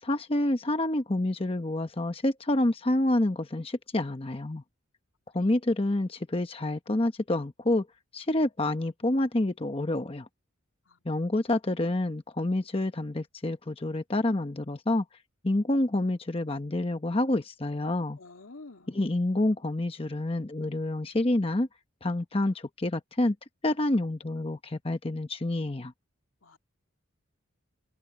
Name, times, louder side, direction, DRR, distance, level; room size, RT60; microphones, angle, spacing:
voice 1, 0.0-4.6 5.3-7.9 8.1-10.3 11.0-15.0 15.4-18.2 18.9-21.7 22.0-23.4 23.6-25.9, left 1 dB, 30° left, 0.9 m, -28 dB
voice 2, 18.2-18.9 26.4-26.6, left 3 dB, 85° left, 2.5 m, -49 dB
open air
head